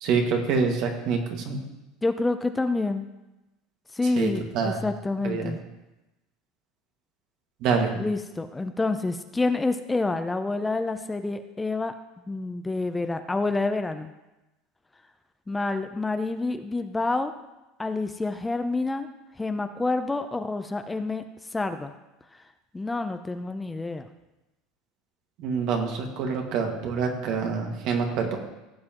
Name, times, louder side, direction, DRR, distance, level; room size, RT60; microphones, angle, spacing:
voice 1, 0.0-1.6 4.2-4.8 5.2-5.5 7.6-7.9 25.4-28.4, right 5 dB, 60° right, 2 dB, 1.9 m, -26 dB
voice 2, 2.0-3.1 3.9-5.6 8.0-11.9 12.3-14.1 15.5-17.3 17.8-19.1 19.4-21.2 21.5-21.9 22.7-24.1, left 3 dB, 10° left, 8 dB, 0.5 m, -28 dB
16.0 x 7.4 x 3.0 m, 1.0 s
supercardioid pair, 110°, 0 cm